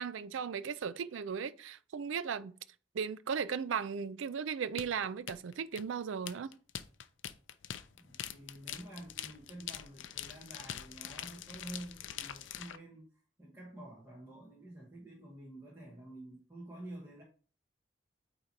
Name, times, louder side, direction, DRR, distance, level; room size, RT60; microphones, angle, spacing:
voice 1, 0.0-2.5 2.9-6.5, right 6 dB, 80° right, 0.4 m, -36 dB
sound 1, 4.8-12.8, left 10 dB, 75° left, 0.5 m, -44 dB
voice 2, 7.9-13.1 13.4-17.2, right 1 dB, 15° right, 1.3 m, -49 dB
8.7 x 3.0 x 4.1 m
head